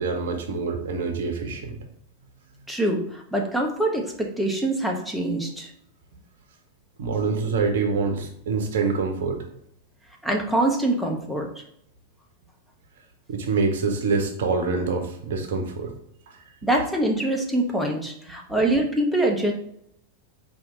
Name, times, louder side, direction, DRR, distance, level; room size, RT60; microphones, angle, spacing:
voice 1, 0.0-1.8 7.0-9.4 13.3-15.9 16.3-16.4, right 4 dB, 60° right, 4 dB, 0.7 m, -25 dB
voice 2, 2.7-5.7 10.2-11.5 16.6-19.5, right 1 dB, ahead, 0 dB, 0.8 m, -24 dB
4.3 x 2.7 x 3.7 m, 0.74 s
figure-of-eight pair, 90°, 0 cm